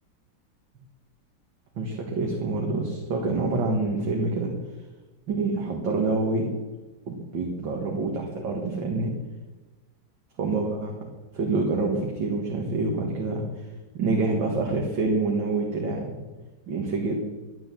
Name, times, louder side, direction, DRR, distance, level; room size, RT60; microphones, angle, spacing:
voice 1, 1.8-4.5 5.3-6.5 7.1-9.1 10.4-11.1 11.3-13.7 13.9-16.1 16.7-17.1, right 3 dB, 65° right, 0 dB, 2.5 m, -27 dB
12.0 x 10.5 x 7.6 m, 1.2 s
omnidirectional pair, 2.2 m